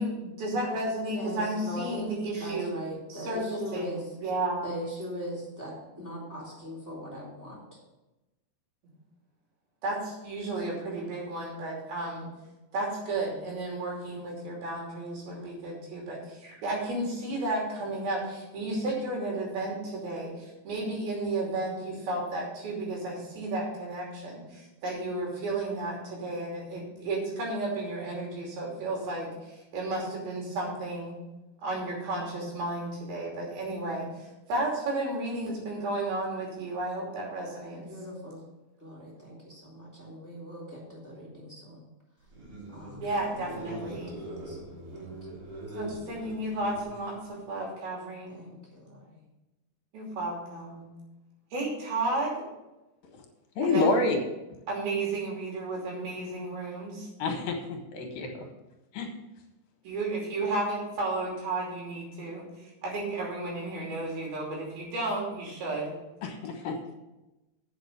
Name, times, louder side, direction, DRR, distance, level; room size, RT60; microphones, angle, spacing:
voice 1, 0.0-2.7 3.1-4.7 9.8-12.3 12.7-20.3 20.6-31.1 31.6-34.1 34.5-37.8 43.0-44.2 45.8-48.4 49.9-50.9 51.5-52.4 53.6-54.0 54.7-57.1 59.8-62.5 62.8-66.0, right 2 dB, 80° right, -2 dB, 4.7 m, -33 dB
voice 2, 1.1-4.0 4.6-7.8 15.2-15.5 37.7-38.4 38.8-41.8 42.7-43.1 43.4-45.3 48.3-49.2, equal, 5° right, -5 dB, 3.0 m, -41 dB
sound 1, 42.2-47.3, right 2 dB, 60° right, 4.8 m, -41 dB
voice 3, 53.6-54.2 57.2-58.3 58.9-59.1 66.2-67.0, left 3 dB, 75° left, 3 dB, 3.1 m, -28 dB
8.8 x 6.5 x 6.6 m, 1.0 s
omnidirectional pair, 4.2 m